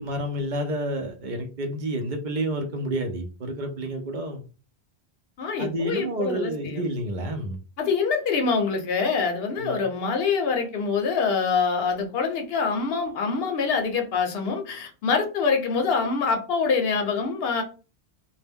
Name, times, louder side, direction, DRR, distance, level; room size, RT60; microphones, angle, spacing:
voice 1, 0.0-4.4 5.6-7.6 9.6-9.9, right 1 dB, 55° right, 5 dB, 0.6 m, -29 dB
voice 2, 5.4-6.8 7.8-17.6, left 5 dB, 75° left, 5 dB, 0.8 m, -25 dB
2.1 x 2.0 x 3.4 m, 0.35 s
omnidirectional pair, 1.0 m